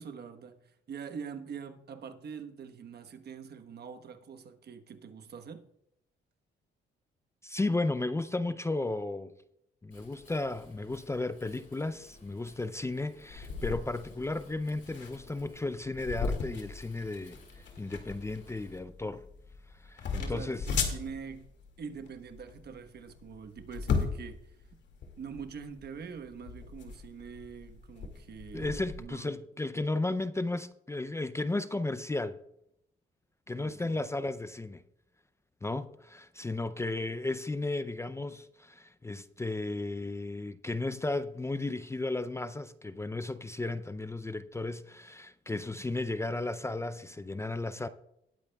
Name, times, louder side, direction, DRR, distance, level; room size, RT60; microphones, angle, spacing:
voice 1, 0.0-5.6 20.2-21.5 21.8-24.5 25.2-29.4 33.5-34.0, right 6 dB, 55° right, 1.2 m, -44 dB
voice 2, 7.4-9.3 9.8-19.2 19.8-20.7 28.5-32.4 33.5-34.8 35.6-47.9, left 2 dB, 15° left, 0.4 m, -34 dB
Wind, 9.9-18.8, left 3 dB, 40° left, 4.8 m, -58 dB
sound 1, 13.3-29.0, left 5 dB, 65° left, 2.2 m, -37 dB
19.5 x 8.6 x 2.3 m
cardioid pair, 90°, 20 cm